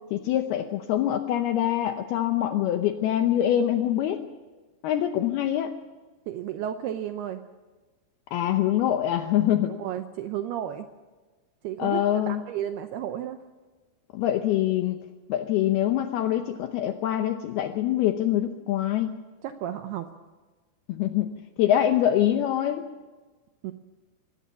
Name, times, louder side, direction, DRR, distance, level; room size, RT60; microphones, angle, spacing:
voice 1, 0.1-4.2 4.8-5.7 8.3-9.7 11.8-12.4 14.1-15.0 15.3-19.2 20.9-21.3 21.6-22.9, left 11 dB, 85° left, 7 dB, 2.2 m, -24 dB
voice 2, 6.3-7.4 9.7-10.9 11.6-13.4 19.4-20.1 23.6-23.7, right 11 dB, 90° right, 8 dB, 2.2 m, -33 dB
22.5 x 17.0 x 7.4 m, 1.3 s
omnidirectional pair, 5.6 m